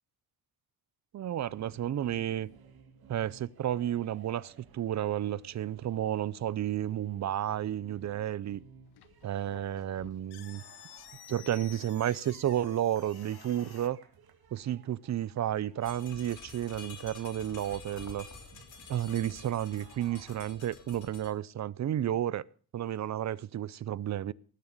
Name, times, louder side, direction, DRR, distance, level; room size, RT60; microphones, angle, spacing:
voice 1, 1.1-2.5 3.1-8.6 9.2-10.6 11.3-14.0 14.5-18.3 18.9-22.4 22.7-24.3, right 11 dB, 50° right, 0.6 m, -32 dB
sound 1, 1.3-20.9, right 6 dB, 75° right, 2.2 m, -59 dB
sound 2, 8.8-13.9, left 12 dB, 90° left, 1.1 m, -52 dB
sound 3, 15.8-21.3, left 4 dB, 50° left, 3.6 m, -49 dB
18.5 x 7.1 x 6.6 m
wide cardioid pair, 145°, 37 cm